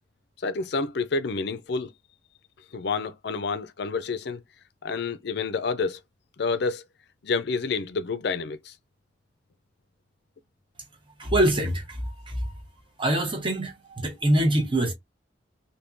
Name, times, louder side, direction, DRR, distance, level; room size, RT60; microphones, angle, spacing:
voice 1, 0.4-1.9 2.7-4.4 4.8-6.0 6.4-6.8 7.2-8.7, left 4 dB, 60° left, 0.5 m, -28 dB
voice 2, 11.2-12.0 12.3-12.5 13.0-14.9, right 1 dB, 30° right, 0.9 m, -24 dB
3.6 x 2.7 x 2.6 m
head